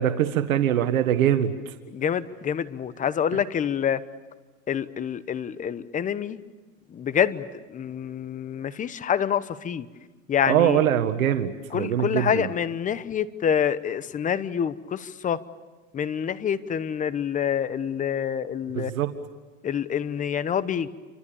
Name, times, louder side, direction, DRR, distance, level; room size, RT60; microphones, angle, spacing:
voice 1, 0.0-1.5 10.4-12.5 18.7-19.1, right 10 dB, 80° right, 8 dB, 1.7 m, -23 dB
voice 2, 1.9-4.0 4.7-6.4 6.9-9.9 10.3-10.8 11.7-15.4 15.9-18.9 19.6-20.9, left 8 dB, 20° left, 15 dB, 1.0 m, -27 dB
29.0 x 26.0 x 7.0 m, 1.2 s
supercardioid pair, 130°, 41 cm